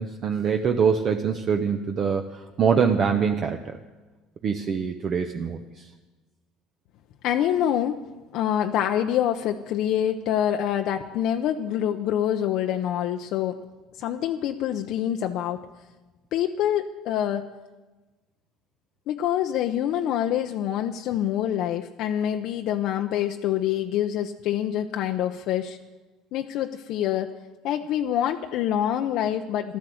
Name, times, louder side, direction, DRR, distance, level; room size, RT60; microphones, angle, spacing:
voice 1, 0.0-3.8 4.4-5.9, right 6 dB, 40° right, 6 dB, 0.8 m, -24 dB
voice 2, 7.2-8.0 8.3-13.6 14.0-15.6 16.3-17.5 19.1-25.8 26.3-27.3 27.6-29.8, left 10 dB, 60° left, 5 dB, 0.7 m, -26 dB
14.0 x 12.5 x 7.8 m, 1.2 s
cardioid pair, 130°, 0 cm